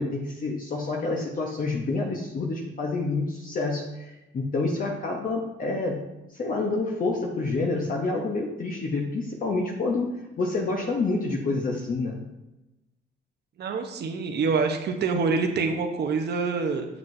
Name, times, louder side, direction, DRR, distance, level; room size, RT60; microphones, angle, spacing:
voice 1, 0.0-6.0 6.3-10.1 10.4-12.2, left 3 dB, 45° left, 0 dB, 0.9 m, -28 dB
voice 2, 13.6-16.9, right 4 dB, 55° right, 4 dB, 0.8 m, -26 dB
7.2 x 6.1 x 2.7 m, 0.98 s
cardioid pair, 90°, 20 cm